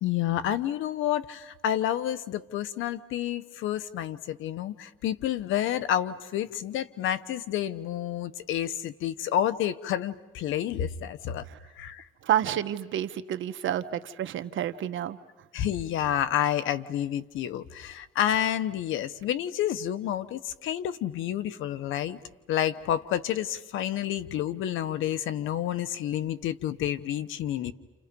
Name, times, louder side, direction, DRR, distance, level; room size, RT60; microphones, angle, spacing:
voice 1, 0.0-11.4 11.8-12.0 15.5-22.2 22.5-27.7, left 11 dB, 90° left, 13 dB, 1.1 m, -29 dB
voice 2, 12.2-15.2, right 11 dB, 75° right, 9 dB, 1.3 m, -29 dB
30.0 x 29.5 x 5.3 m, 1.1 s
cardioid pair, 90°, 20 cm